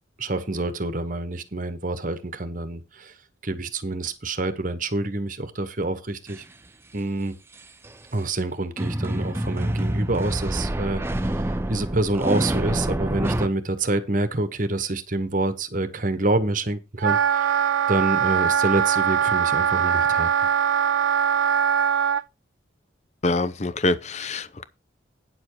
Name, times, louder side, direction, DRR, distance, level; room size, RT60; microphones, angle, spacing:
voice 1, 0.2-3.1 3.4-6.4 6.9-7.3 8.1-17.5 17.9-20.3, right 2 dB, 45° right, 1.2 m, -27 dB
sound 1, 6.3-6.4 7.5-7.9 8.8-13.5, right 1 dB, 10° right, 0.5 m, -27 dB
Wind instrument woodwind instrument, 17.0-22.2, right 8 dB, 80° right, 0.4 m, -21 dB
voice 2, 23.2-24.6, left 2 dB, 35° left, 0.6 m, -25 dB
9.6 x 7.0 x 4.7 m
head